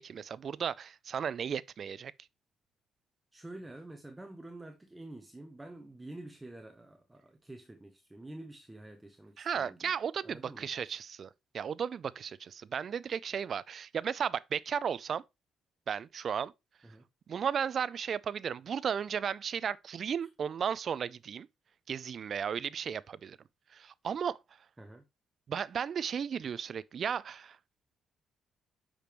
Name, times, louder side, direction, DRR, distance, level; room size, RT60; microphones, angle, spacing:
voice 1, 0.0-2.1 9.4-15.2 15.9-16.5 17.3-21.5 21.9-23.4 23.7-24.4 25.5-27.6, right 7 dB, 55° right, 0.3 m, -35 dB
voice 2, 3.3-9.9 10.2-10.7 16.8-17.1 20.2-20.3 24.8-25.1, right 2 dB, 15° right, 0.8 m, -48 dB
6.7 x 5.1 x 3.0 m
cardioid pair, 90°, 0 cm